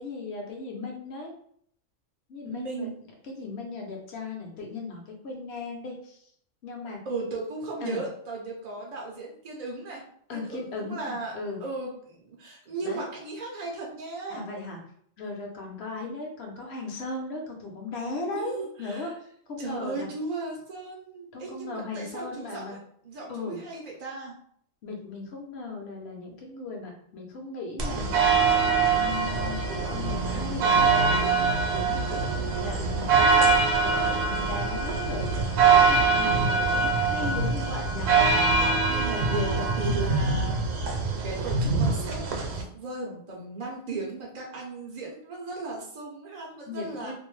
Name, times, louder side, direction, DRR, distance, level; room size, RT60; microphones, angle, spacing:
voice 1, 0.0-1.3 2.3-2.9 3.2-6.3 6.6-7.0 7.8-8.1 10.3-11.6 12.8-13.0 14.3-14.8 15.2-19.1 19.5-20.1 21.3-22.8 23.3-23.6 24.8-33.5 33.8-38.1 46.7-47.1, left 3 dB, 60° left, 1 dB, 0.8 m, -37 dB
voice 2, 2.5-3.0 7.0-10.0 10.3-11.3 11.6-14.5 18.3-19.1 19.6-22.8 23.0-24.4 32.3-32.7 38.5-41.0 41.2-47.1, right 3 dB, 60° right, -2 dB, 0.4 m, -36 dB
sound 1, 27.8-42.6, right 4 dB, 75° right, 0.9 m, -23 dB
2.6 x 2.1 x 3.0 m, 0.64 s
omnidirectional pair, 1.4 m